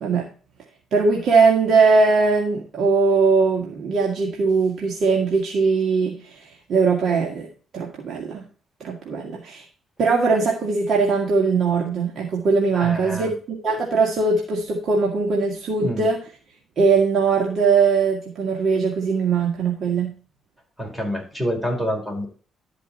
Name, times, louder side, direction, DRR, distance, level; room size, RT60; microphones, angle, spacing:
voice 1, 0.9-6.4 6.7-7.5 7.7-8.4 8.8-9.6 10.0-16.2 16.8-20.1, right 4 dB, 65° right, -1 dB, 2.0 m, -20 dB
voice 2, 12.8-13.3 15.8-16.1 20.8-22.3, equal, 5° right, 1 dB, 4.7 m, -27 dB
12.0 x 5.4 x 4.3 m, 0.39 s
cardioid pair, 90°, 0 cm